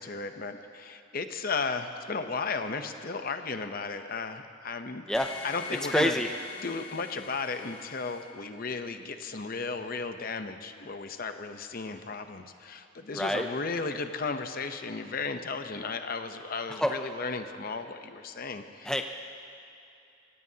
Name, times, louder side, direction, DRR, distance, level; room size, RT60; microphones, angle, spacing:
voice 1, 0.0-5.0 5.4-6.2 6.6-19.0, left 4 dB, 45° left, 8 dB, 0.7 m, -35 dB
sound 1, 5.1-8.2, left 5 dB, 30° left, 2.2 m, -44 dB
voice 2, 5.9-6.3 13.2-13.5 16.8-16.9 18.9-19.0, equal, 5° left, 4 dB, 0.4 m, -26 dB
26.0 x 16.5 x 2.8 m, 2.7 s
head